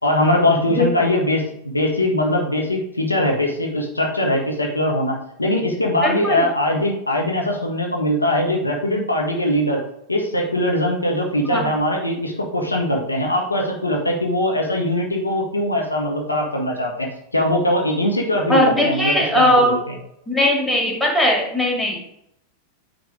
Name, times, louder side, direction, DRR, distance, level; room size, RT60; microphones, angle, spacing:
voice 1, 0.0-9.8 10.1-20.0, left 1 dB, 80° left, 0 dB, 1.5 m, -21 dB
voice 2, 6.0-6.4 11.5-11.7 18.5-19.8 20.3-22.0, left 1 dB, 5° left, -2 dB, 2.5 m, -18 dB
9.3 x 3.7 x 4.9 m, 0.76 s
figure-of-eight pair, 90°, 0 cm